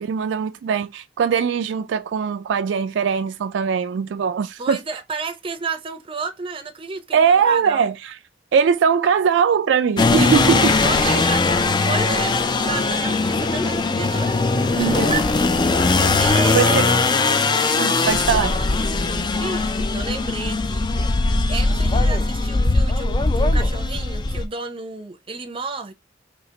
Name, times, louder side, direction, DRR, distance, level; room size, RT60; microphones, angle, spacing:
voice 1, 0.0-4.8 7.1-8.1 8.5-11.1 14.5-15.1 16.5-16.9 17.7-18.5, right 7 dB, 70° right, 0.3 m, -21 dB
voice 2, 4.6-7.9 10.8-14.4 14.8-15.7 16.1-16.9 17.8-20.9 21.5-25.9, right 4 dB, 30° right, 0.6 m, -32 dB
sound 1, 10.0-24.5, left 3 dB, 25° left, 0.3 m, -20 dB
4.3 x 2.8 x 2.8 m
head